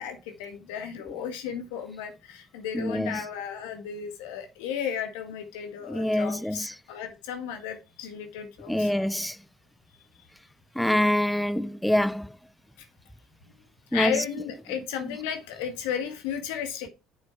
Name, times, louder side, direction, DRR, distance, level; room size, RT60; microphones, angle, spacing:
voice 1, 0.0-9.0 13.9-16.9, left 8 dB, 85° left, 1.6 m, -34 dB
voice 2, 2.7-3.2 5.9-6.7 8.7-9.4 10.8-12.3 13.9-14.1, left 1 dB, 5° left, 0.3 m, -25 dB
7.3 x 6.1 x 4.4 m
supercardioid pair, 75°, 0 cm